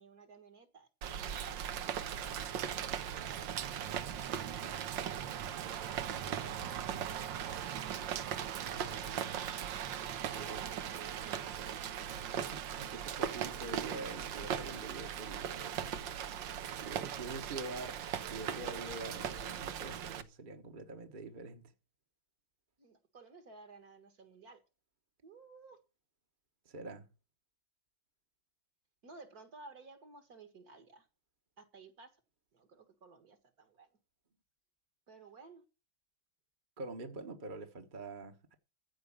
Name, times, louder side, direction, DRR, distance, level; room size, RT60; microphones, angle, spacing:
voice 1, 0.0-5.4 6.2-7.0 10.3-11.6 22.8-24.6 25.2-25.8 29.0-31.1 31.6-32.2 32.5-33.9 35.1-35.6, right 4 dB, 50° right, 2.1 m, -56 dB
Rain, 1.0-20.2, right 9 dB, 70° right, 1.6 m, -39 dB
voice 2, 8.7-9.5 10.3-10.6 12.1-15.9 16.7-21.7 26.6-27.1 36.8-38.5, right 3 dB, 30° right, 1.3 m, -46 dB
15.0 x 4.9 x 8.7 m
omnidirectional pair, 2.1 m